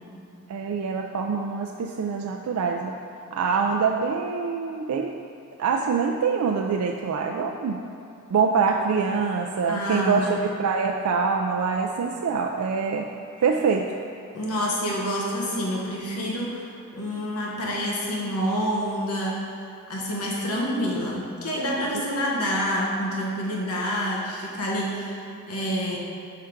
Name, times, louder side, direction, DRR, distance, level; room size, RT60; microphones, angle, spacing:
voice 1, 0.5-2.9 3.3-5.2 5.6-7.8 8.3-13.1 13.4-13.8, right 5 dB, 80° right, 1 dB, 0.3 m, -25 dB
voice 2, 9.7-10.5 14.3-19.4 19.9-26.0, equal, 85° left, -3 dB, 1.0 m, -28 dB
5.7 x 4.5 x 5.0 m, 2.8 s
head